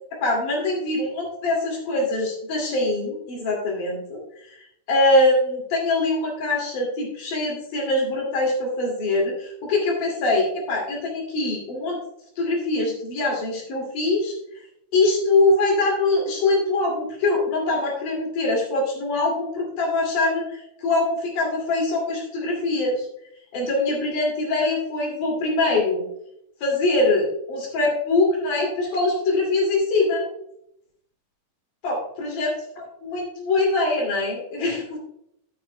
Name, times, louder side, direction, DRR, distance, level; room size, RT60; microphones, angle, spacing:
voice 1, 0.1-4.2 4.9-12.0 12.4-14.4 14.9-23.1 23.5-26.0 26.6-30.2 31.8-32.5 32.8-35.0, left 2 dB, 70° left, -1 dB, 3.9 m, -23 dB
10.5 x 9.6 x 2.2 m, 0.76 s
omnidirectional pair, 3.9 m